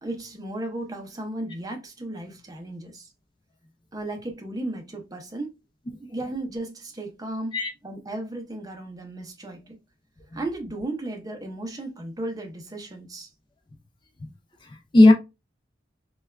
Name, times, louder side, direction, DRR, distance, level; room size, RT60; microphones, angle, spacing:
voice 1, 0.0-3.1 3.9-5.5 6.0-7.6 7.8-9.8 10.3-13.3, right 2 dB, 20° right, 0.6 m, -35 dB
voice 2, 14.6-15.1, left 2 dB, 25° left, 0.4 m, -17 dB
3.3 x 2.3 x 2.2 m
head